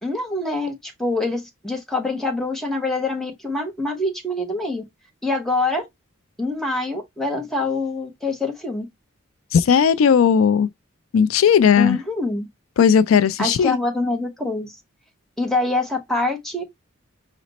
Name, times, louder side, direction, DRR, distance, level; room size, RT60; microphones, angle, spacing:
voice 1, 0.0-4.8 5.2-5.8 6.4-8.9 11.8-12.5 13.4-14.8 15.4-16.6, left 2 dB, ahead, 0.9 m, -25 dB
voice 2, 9.5-10.7 11.1-12.0 12.8-13.8, left 7 dB, 85° left, 0.4 m, -16 dB
5.0 x 2.1 x 4.0 m
head